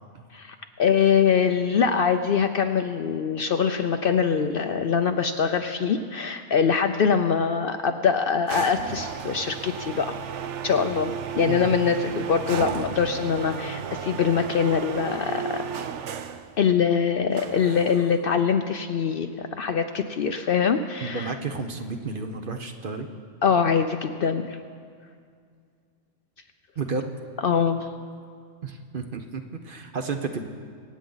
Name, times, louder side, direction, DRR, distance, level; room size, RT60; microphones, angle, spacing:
voice 1, 0.3-10.2 10.6-15.8 16.6-21.3 23.4-24.6 27.4-27.9, left 6 dB, 60° left, 7 dB, 0.6 m, -23 dB
sound 1, 8.5-16.5 17.4-18.3, right 8 dB, 70° right, 0.9 m, -34 dB
voice 2, 21.0-23.1 26.8-27.1 28.6-30.5, right 4 dB, 50° right, 6 dB, 0.9 m, -32 dB
25.0 x 8.4 x 3.9 m, 2.2 s
omnidirectional pair, 1.3 m